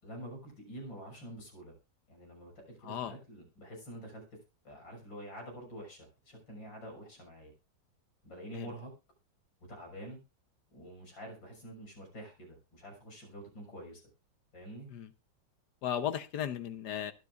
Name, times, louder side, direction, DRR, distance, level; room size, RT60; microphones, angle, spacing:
voice 1, 0.0-1.7 2.1-4.2 4.6-7.5 8.2-8.9 9.7-10.2 10.7-14.0 14.5-14.9, equal, 90° left, 1 dB, 7.3 m, -47 dB
voice 2, 2.8-3.1 8.5-8.7 14.9-15.1 15.8-17.1, left 10 dB, 70° left, 11 dB, 1.3 m, -35 dB
22.5 x 8.1 x 2.4 m, 0.28 s
omnidirectional pair, 2.0 m